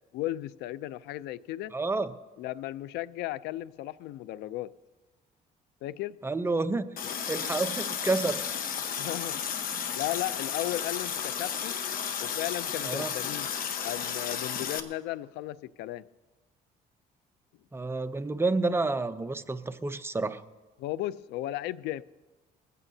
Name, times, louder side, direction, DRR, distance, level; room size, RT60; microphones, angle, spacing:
voice 1, 0.1-1.7 2.4-4.7 5.8-6.2 9.0-9.4 9.9-11.8 12.2-13.5 13.8-16.1 20.8-22.0, left 15 dB, 85° left, 0.4 m, -35 dB
voice 2, 1.7-2.1 6.2-6.9 7.3-8.4 12.8-13.1 17.7-20.4, right 3 dB, 15° right, 0.6 m, -29 dB
Water tap faucet, 7.0-14.8, left 7 dB, 60° left, 1.2 m, -33 dB
21.0 x 15.0 x 2.8 m
cardioid pair, 110°, 17 cm